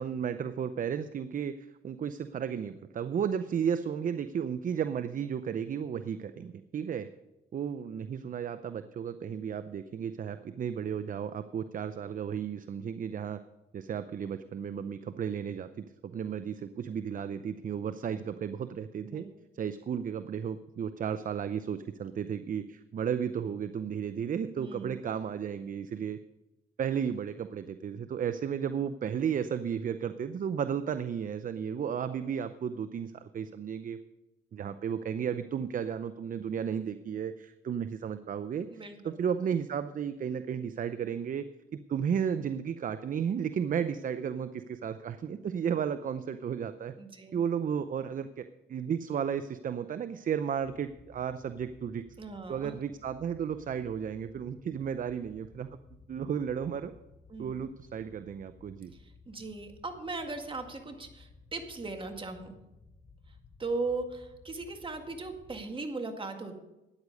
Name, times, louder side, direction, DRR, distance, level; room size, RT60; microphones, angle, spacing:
voice 1, 0.0-1.5 1.8-7.1 7.5-13.4 13.7-19.3 19.6-26.2 26.8-34.0 34.5-38.7 39.0-41.4 41.7-46.9 47.3-52.0 52.5-55.7 56.1-56.9 57.4-58.9, right 7 dB, 45° right, 12 dB, 0.6 m, -33 dB
voice 2, 24.6-24.9 38.7-39.1 47.0-47.4 52.2-52.7 57.3-57.5 58.9-62.5 63.6-66.6, right 3 dB, 25° right, 5 dB, 2.0 m, -38 dB
sound 1, 50.6-65.6, left 4 dB, 35° left, 2.5 m, -57 dB
13.0 x 9.7 x 5.3 m, 0.98 s
cardioid pair, 90°, 20 cm